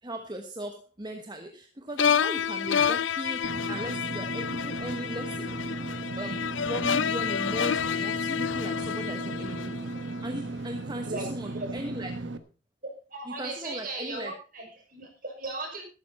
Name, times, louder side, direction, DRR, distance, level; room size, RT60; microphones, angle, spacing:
voice 1, 0.0-5.4 6.2-9.9 10.2-12.3 13.3-14.4, right 1 dB, 20° right, 5 dB, 1.2 m, -38 dB
sound 1, 2.0-10.2, left 7 dB, 70° left, 0.5 m, -29 dB
Engine / Mechanisms, 3.4-12.4, right 2 dB, 65° right, 1.2 m, -36 dB
voice 2, 13.1-15.8, right 2 dB, 45° right, 1 dB, 6.2 m, -37 dB
13.5 x 12.5 x 4.3 m, 0.35 s
head